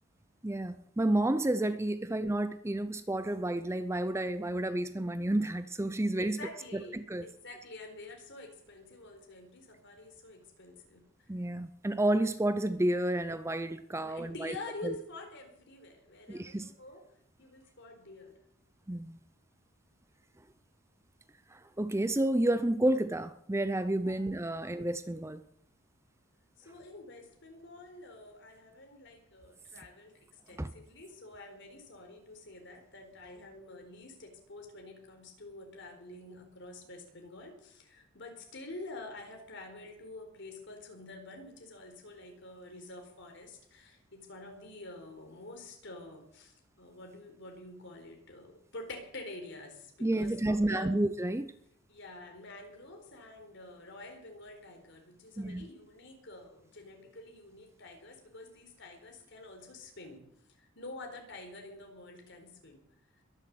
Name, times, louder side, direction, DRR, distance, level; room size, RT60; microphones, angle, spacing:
voice 1, 0.4-6.4 6.7-7.3 11.3-14.5 14.8-14.9 16.3-16.7 18.9-19.2 21.5-25.4 30.6-30.7 50.0-51.5 55.4-55.7, right 1 dB, 15° right, 0.6 m, -30 dB
voice 2, 6.2-11.3 14.0-17.0 17.4-18.4 24.0-24.4 26.6-51.0 51.9-60.2 60.6-62.8, left 2 dB, 55° left, 4.2 m, -48 dB
22.0 x 7.5 x 7.8 m
head